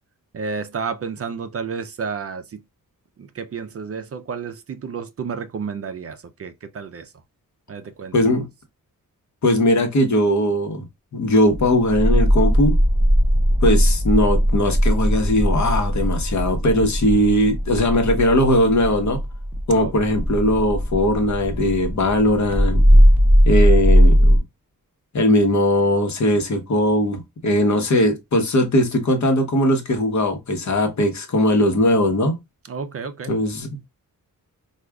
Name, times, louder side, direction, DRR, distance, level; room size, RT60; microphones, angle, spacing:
voice 1, 0.3-2.6 3.2-7.1 7.7-8.3 19.7-19.9 32.7-33.3, right 5 dB, 45° right, 0.4 m, -31 dB
voice 2, 8.1-8.5 9.4-10.9 11.1-12.8 13.6-19.2 19.7-22.9 23.4-24.4 25.1-32.4 33.3-33.7, left 1 dB, 55° left, 1.0 m, -19 dB
sound 1, 11.5-24.4, equal, 5° right, 0.6 m, -18 dB
4.7 x 2.4 x 2.2 m
wide cardioid pair, 130°, 34 cm